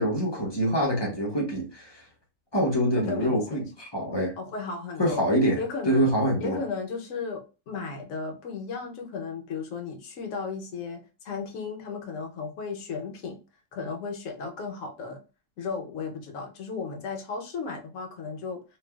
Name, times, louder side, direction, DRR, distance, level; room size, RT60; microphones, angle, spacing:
voice 1, 0.0-2.0 2.5-4.3 5.0-5.6 5.9-6.6, equal, 25° left, 0.6 m, -25 dB
voice 2, 3.0-3.6 4.4-5.2 5.5-6.1 6.4-13.4 13.7-15.2 15.6-18.6, left 5 dB, 70° left, 1.1 m, -35 dB
3.1 x 2.3 x 2.3 m
omnidirectional pair, 1.5 m